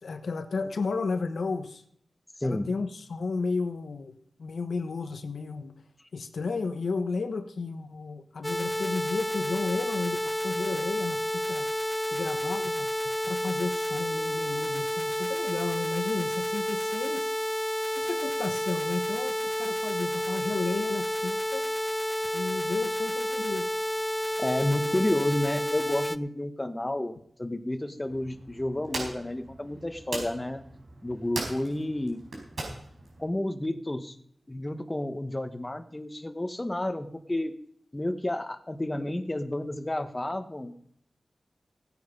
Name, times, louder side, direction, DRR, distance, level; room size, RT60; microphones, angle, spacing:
voice 1, 0.0-1.8 2.4-5.7 6.1-11.7 12.1-12.9 13.3-17.3 18.0-21.7 22.3-23.7, left 4 dB, 80° left, 8 dB, 1.1 m, -33 dB
sound 1, 8.4-26.2, equal, 5° left, 0.5 m, -30 dB
voice 2, 24.4-27.1 27.4-30.6 31.0-32.2 33.2-34.2 34.5-37.5 37.9-40.8, left 1 dB, 20° left, 8 dB, 1.1 m, -30 dB
sound 2, 28.0-33.3, right 2 dB, 85° right, 4.8 m, -40 dB
16.0 x 9.4 x 5.3 m, 0.67 s
wide cardioid pair, 75°, 0 cm